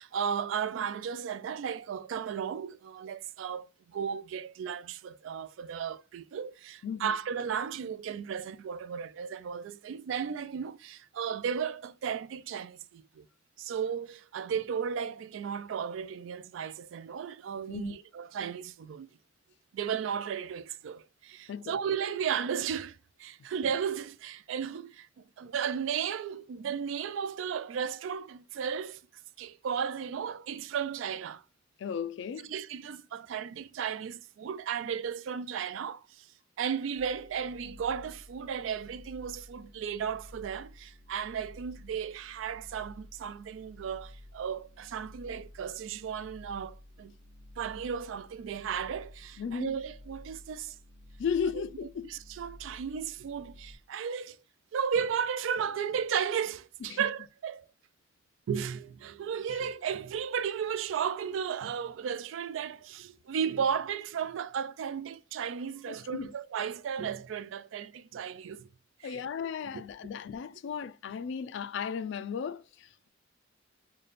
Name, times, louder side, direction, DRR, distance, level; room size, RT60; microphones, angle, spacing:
voice 1, 0.0-13.2 13.6-19.1 19.7-25.1 25.4-29.0 29.4-31.4 32.4-36.3 36.6-47.1 47.6-50.8 51.5-51.6 52.0-54.4 54.7-57.6 58.5-68.7 69.0-69.2 69.6-69.8, right 7 dB, 75° right, 0.3 m, -34 dB
voice 2, 31.8-32.5 49.4-49.8 51.2-52.1 56.9-57.0 65.9-66.3 69.0-73.1, left 6 dB, 65° left, 0.3 m, -35 dB
sound 1, 36.9-53.7, left 1 dB, 50° right, 0.7 m, -52 dB
3.3 x 2.2 x 3.9 m
head